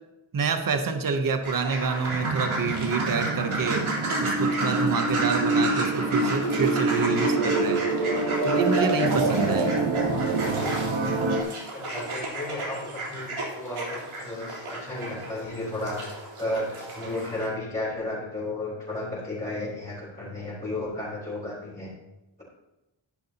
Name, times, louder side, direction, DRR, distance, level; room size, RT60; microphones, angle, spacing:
voice 1, 0.3-3.8 4.2-7.8 8.4-9.8, right 5 dB, 45° right, 7 dB, 0.9 m, -27 dB
sound 1, 1.4-17.5, right 2 dB, 85° right, 3.6 m, -33 dB
sound 2, 2.1-11.4, right 3 dB, 70° right, 1.4 m, -26 dB
voice 2, 7.0-7.4 11.7-16.0 16.4-21.9, left 2 dB, 15° left, -10 dB, 3.6 m, -33 dB
13.0 x 10.5 x 2.9 m, 0.98 s
wide cardioid pair, 150°, 48 cm